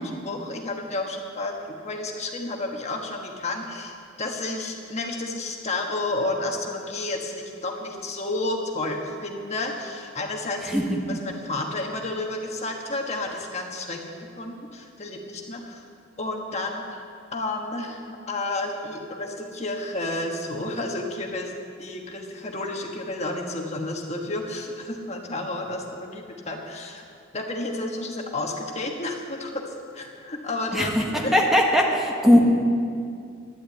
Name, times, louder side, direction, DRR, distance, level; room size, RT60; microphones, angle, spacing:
voice 1, 0.0-10.8 11.1-15.8 16.2-17.0 17.3-21.5 21.8-27.0 27.3-29.6 29.9-30.9 31.2-31.4, left 2 dB, 35° left, 1 dB, 1.4 m, -31 dB
voice 2, 10.6-11.2 30.7-31.0 31.3-32.4, left 1 dB, ahead, -1 dB, 1.4 m, -20 dB
11.5 x 11.0 x 8.7 m, 2.4 s
head